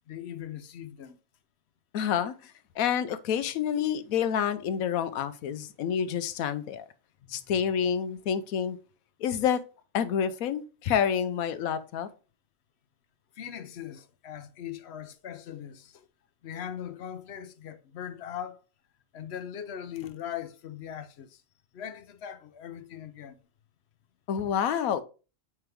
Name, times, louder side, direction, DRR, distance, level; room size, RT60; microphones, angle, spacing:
voice 1, 0.1-1.2 7.2-7.6 13.4-16.1 16.4-18.6 19.1-21.4 21.7-23.4, left 9 dB, 60° left, 0.8 m, -40 dB
voice 2, 1.9-2.5 2.8-6.9 7.3-8.8 9.2-9.6 9.9-12.1 24.3-25.0, left 8 dB, 90° left, 1.1 m, -28 dB
8.9 x 3.5 x 3.4 m
omnidirectional pair, 1.4 m